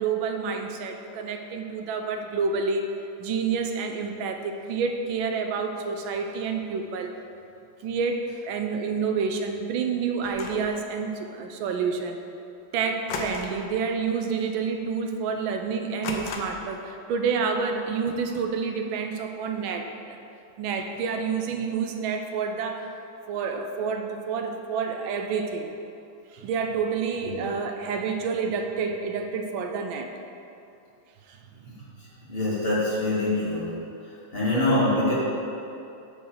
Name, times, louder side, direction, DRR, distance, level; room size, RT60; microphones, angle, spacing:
voice 1, 0.0-2.8 3.2-4.4 4.7-7.1 7.8-12.2 12.7-19.9 20.6-22.9 23.3-25.7 26.3-30.1, right 5 dB, 85° right, 5 dB, 1.5 m, -28 dB
sound 1, 10.2-10.7 13.1-13.7 14.0-14.4 14.8-14.9 16.0-16.8, left 4 dB, 70° left, 1.5 m, -34 dB
voice 2, 32.3-33.7 34.3-35.1, left 1 dB, 30° left, -9 dB, 2.3 m, -24 dB
8.5 x 4.8 x 6.6 m, 2.7 s
omnidirectional pair, 2.1 m